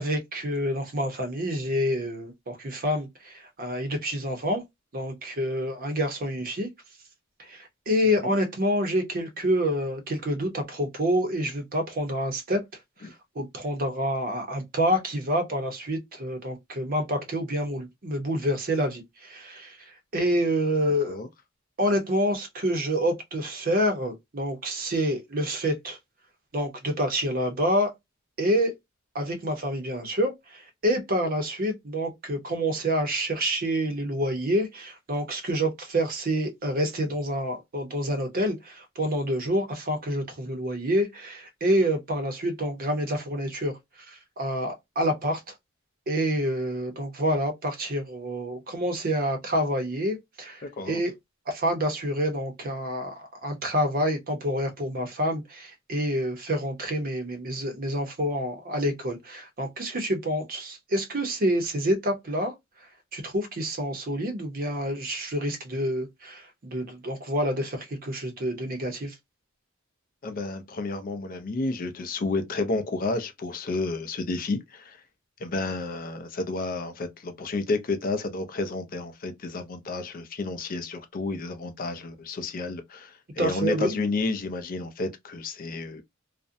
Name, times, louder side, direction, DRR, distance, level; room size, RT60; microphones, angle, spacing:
voice 1, 0.0-4.6 4.9-6.7 7.4-12.6 13.0-21.2 21.8-26.0 26.5-27.9 28.4-28.7 29.1-45.5 46.1-51.1 51.5-62.5 63.1-69.1 83.4-83.9, equal, 45° right, 0.7 m, -28 dB
voice 2, 70.2-75.0 75.4-86.0, left 3 dB, 40° left, 0.4 m, -31 dB
2.5 x 2.1 x 2.5 m
head